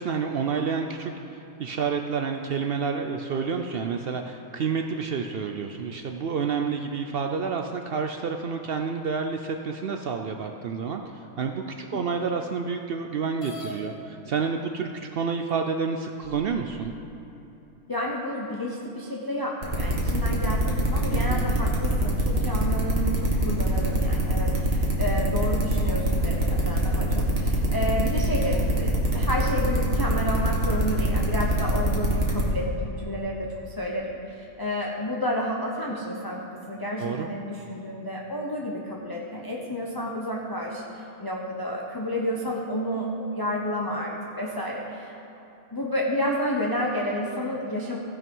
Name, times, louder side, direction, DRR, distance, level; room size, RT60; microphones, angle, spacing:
voice 1, 0.0-16.9 21.1-21.5 37.0-37.3, right 5 dB, 80° right, 4 dB, 0.5 m, -29 dB
sound 1, 13.4-13.8 14.8-14.9 15.5-15.6 16.2-16.9, left 1 dB, 85° left, 2.0 m, -41 dB
voice 2, 17.9-36.4 36.7-44.1 44.4-45.2 45.7-48.0, left 1 dB, 20° left, -3 dB, 0.6 m, -30 dB
sound 2, 19.6-32.5, right 1 dB, 40° right, 1.8 m, -24 dB
16.0 x 5.5 x 5.4 m, 2.9 s
omnidirectional pair, 1.6 m